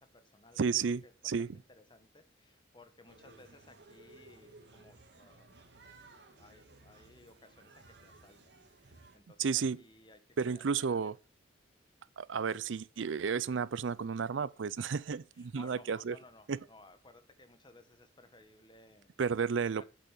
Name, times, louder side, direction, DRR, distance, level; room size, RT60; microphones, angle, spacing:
voice 1, 0.0-5.8 6.4-9.5 9.7-11.1 15.3-19.2 19.8-19.9, left 2 dB, 25° left, 1.4 m, -60 dB
voice 2, 0.6-1.6 9.4-9.8 10.4-11.2 12.2-16.2 16.5-16.6 19.2-19.8, right 6 dB, 75° right, 0.5 m, -32 dB
sound 1, 3.1-9.2, right 2 dB, 60° right, 1.9 m, -58 dB
8.3 x 8.2 x 7.4 m
head